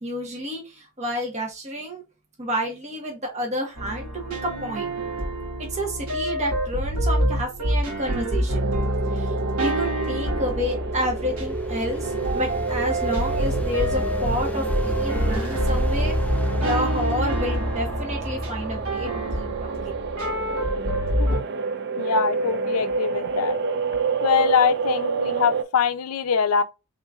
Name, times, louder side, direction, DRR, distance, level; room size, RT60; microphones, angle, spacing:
voice 1, 0.0-2.0 2.4-4.9 5.7-8.7 9.1-16.2 16.6-19.1 19.3-19.7, equal, 30° right, 1.1 m, -30 dB
sound 1, 3.8-21.4, equal, 90° right, 1.7 m, -27 dB
sound 2, 8.5-25.6, right 4 dB, 50° right, 0.5 m, -29 dB
sound 3, 10.4-20.4, left 1 dB, 5° left, 0.5 m, -33 dB
voice 2, 22.0-23.6 24.2-26.6, left 7 dB, 75° left, 0.4 m, -23 dB
4.1 x 3.7 x 2.3 m
head